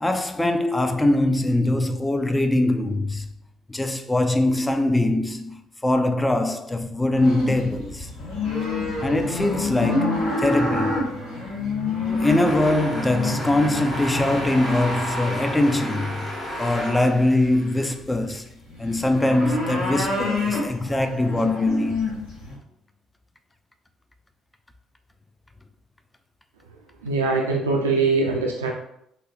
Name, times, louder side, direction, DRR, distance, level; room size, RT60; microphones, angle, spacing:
voice 1, 0.0-3.3 3.7-8.1 9.0-11.1 12.2-16.3 16.6-18.5 18.8-22.0, left 1 dB, 15° left, 0.3 m, -22 dB
sound 1, 7.1-15.4 16.5-17.0 17.4-22.6, left 3 dB, 70° left, 1.0 m, -28 dB
sound 2, 12.2-17.9, equal, 35° left, 1.0 m, -32 dB
voice 2, 27.0-28.7, right 3 dB, 85° right, 0.3 m, -22 dB
4.1 x 2.0 x 2.6 m
hypercardioid pair, 50°, 0 cm